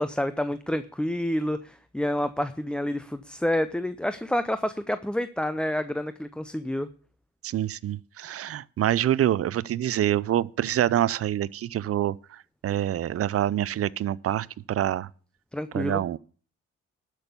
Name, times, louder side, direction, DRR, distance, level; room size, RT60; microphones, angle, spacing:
voice 1, 0.0-6.9 15.5-16.0, left 1 dB, 5° left, 0.5 m, -28 dB
voice 2, 7.4-15.1 15.7-16.2, right 12 dB, 50° right, 0.5 m, -26 dB
12.5 x 6.2 x 6.7 m
cardioid pair, 90°, 30 cm